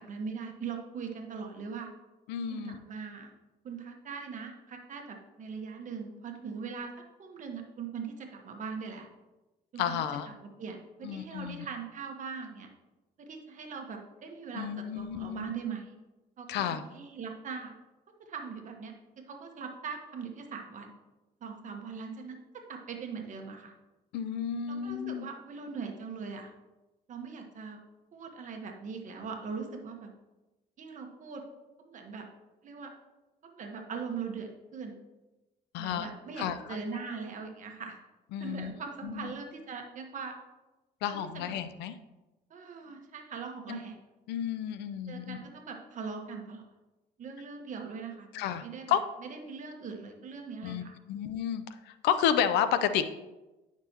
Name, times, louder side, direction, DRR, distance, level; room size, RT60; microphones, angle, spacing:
voice 1, 0.0-1.9 2.5-3.3 3.6-6.9 7.2-9.1 9.7-12.7 13.2-15.9 16.4-17.7 18.2-20.9 21.4-23.7 24.7-26.5 27.1-27.8 28.1-30.1 30.8-31.4 31.8-32.2 32.6-32.9 33.4-35.0 35.8-38.0 38.4-40.4 41.1-41.4 42.5-44.0 45.1-46.6 47.2-48.3 48.6-50.9, right 5 dB, 50° right, 3 dB, 1.3 m, -41 dB
voice 2, 2.3-2.8 9.8-10.3 11.0-11.7 14.5-15.5 16.5-16.8 24.1-25.3 35.7-36.1 36.4-36.6 36.9-37.0 38.3-38.7 39.0-39.3 41.0-41.9 43.7-43.8 44.3-45.4 48.3-49.0 50.6-50.8 51.1-53.0, left 9 dB, 85° left, 12 dB, 0.5 m, -31 dB
9.6 x 5.9 x 2.9 m, 1.1 s
cardioid pair, 110°, 17 cm